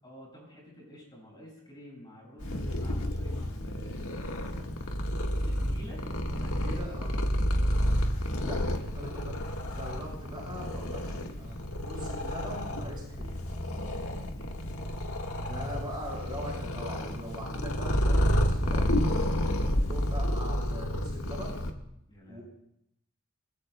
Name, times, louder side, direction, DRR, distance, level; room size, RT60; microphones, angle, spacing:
voice 1, 0.0-4.0 5.4-6.9 8.4-8.9 13.7-14.6 19.4-19.8 22.1-22.4, equal, 20° left, -3 dB, 6.4 m, -49 dB
Purr, 2.4-21.7, equal, 75° left, 1.6 m, -30 dB
voice 2, 6.5-7.1 8.4-9.3 9.7-13.4 15.5-18.8 19.6-21.6 22.3-22.4, equal, 20° right, -4 dB, 7.0 m, -41 dB
26.0 x 20.5 x 2.2 m, 0.76 s
head